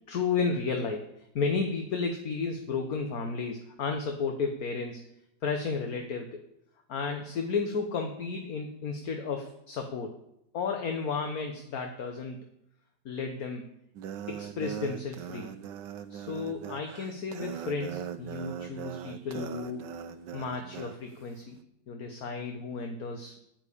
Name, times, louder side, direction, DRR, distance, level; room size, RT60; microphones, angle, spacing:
voice 1, 0.1-1.0 1.3-5.0 5.4-6.4 6.9-10.1 10.5-12.4 13.0-13.7 14.3-15.5 16.1-20.0 20.3-21.6 21.9-23.3, left 4 dB, 60° left, 4 dB, 1.6 m, -33 dB
sound 1, 13.9-21.0, right 9 dB, 85° right, 1.5 m, -40 dB
10.0 x 9.2 x 8.4 m, 0.80 s
omnidirectional pair, 1.9 m